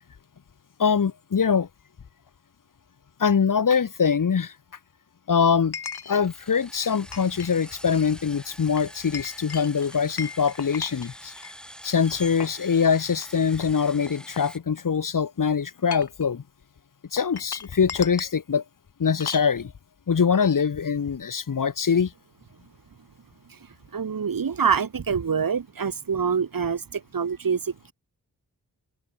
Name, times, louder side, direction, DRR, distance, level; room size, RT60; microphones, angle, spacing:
voice 1, 0.8-1.7 3.2-4.5 5.3-5.7 6.1-11.3 11.8-16.4 17.1-18.6 19.0-19.7 20.1-22.1, left 6 dB, 55° left, 1.4 m, -23 dB
Chink clink, 2.3-2.4 5.7-6.2 6.7-7.5 7.8-8.1 8.8-11.5 12.1-12.6 13.1-13.3 13.6-15.0 15.7-16.3 17.2-18.4 19.2-19.5, left 6 dB, 80° left, 5.5 m, -37 dB
sound 1, 6.1-14.6, equal, ahead, 7.9 m, -45 dB
voice 2, 23.9-27.9, right 6 dB, 60° right, 2.0 m, -26 dB
open air
cardioid pair, 65°, 38 cm